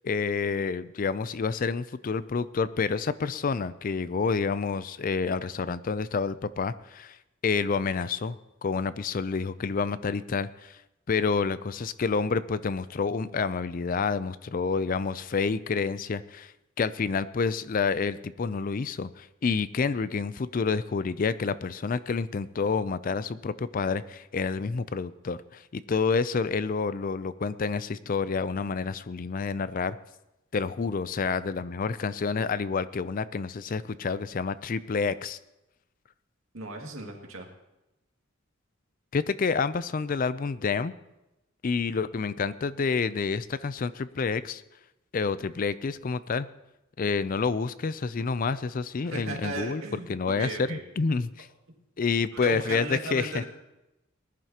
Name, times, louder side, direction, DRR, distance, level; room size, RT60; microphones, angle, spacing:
voice 1, 0.0-7.2 7.4-10.8 11.1-16.5 16.8-30.0 30.5-35.4 39.1-40.9 41.6-44.6 45.1-46.5 47.0-49.8 50.1-51.5 52.0-53.4, left 5 dB, 45° left, 16 dB, 0.4 m, -28 dB
voice 2, 36.5-37.5 49.0-50.8 52.3-53.4, right 2 dB, 85° right, 1 dB, 2.1 m, -36 dB
20.0 x 11.0 x 2.9 m, 0.94 s
head